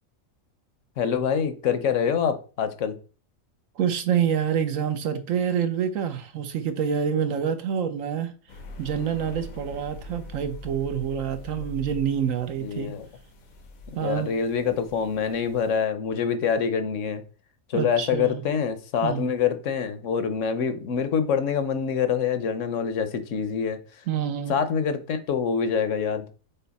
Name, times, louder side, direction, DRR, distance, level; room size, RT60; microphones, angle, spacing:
voice 1, 1.0-3.0 12.6-13.1 13.9-17.2 17.7-24.0 24.5-26.3, left 7 dB, 70° left, 1.0 m, -25 dB
voice 2, 3.8-8.3 8.8-12.9 13.9-14.3 17.7-18.4 19.0-19.2 24.1-24.5, right 8 dB, 75° right, 1.2 m, -27 dB
sound 1, 8.5-15.7, left 1 dB, 85° left, 1.4 m, -43 dB
5.7 x 4.3 x 4.1 m
omnidirectional pair, 1.4 m